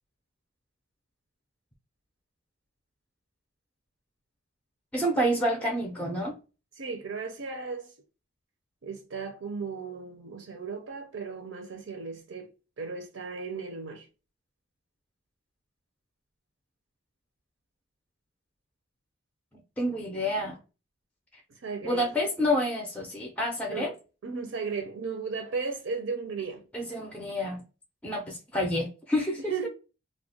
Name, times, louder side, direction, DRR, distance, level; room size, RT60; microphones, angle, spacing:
voice 1, 4.9-6.3 19.8-20.6 21.8-23.9 26.7-27.6 28.0-29.4, equal, 5° left, 0.4 m, -28 dB
voice 2, 6.8-7.9 8.8-12.5 12.8-14.1 21.6-22.0 23.7-23.9 24.2-26.6 29.4-29.7, right 4 dB, 75° right, 0.5 m, -35 dB
2.3 x 2.1 x 3.6 m
head